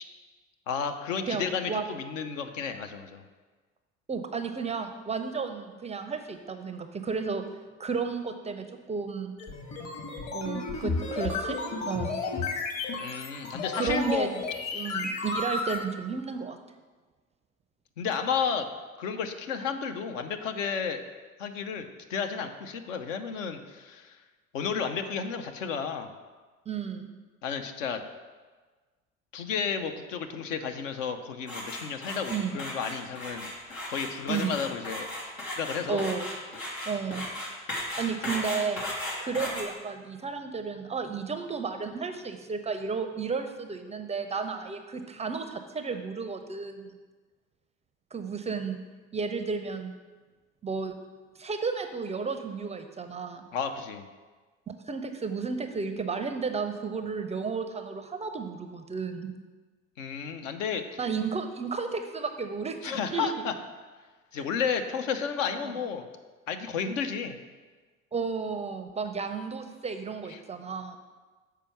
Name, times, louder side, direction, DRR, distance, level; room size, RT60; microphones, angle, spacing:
voice 1, 0.7-3.2 13.0-14.4 14.8-15.0 18.0-18.7 19.0-21.0 21.4-24.2 24.5-26.1 27.4-28.0 29.3-33.5 33.9-35.1 35.6-36.1 53.5-54.1 60.0-61.0 62.8-63.5 64.3-66.0 66.5-67.4 70.3-70.4, left 6 dB, 70° left, 7 dB, 0.7 m, -32 dB
voice 2, 1.3-1.9 4.1-7.4 7.8-9.3 10.3-11.6 11.9-12.2 13.7-14.3 14.7-16.6 26.7-27.1 32.3-32.6 34.3-34.6 35.9-36.3 36.9-37.3 38.0-38.8 39.2-46.9 48.1-48.8 49.1-49.9 50.6-51.0 51.4-53.5 54.9-59.3 61.0-63.3 64.3-64.4 65.6-65.7 68.1-71.0, right 5 dB, 15° right, 7 dB, 0.5 m, -33 dB
sound 1, 9.4-15.8, left 3 dB, 45° left, 1.5 m, -33 dB
sound 2, 31.5-39.6, left 1 dB, 85° left, 1.5 m, -36 dB
6.8 x 4.6 x 5.9 m, 1.4 s
figure-of-eight pair, 65°, 40 cm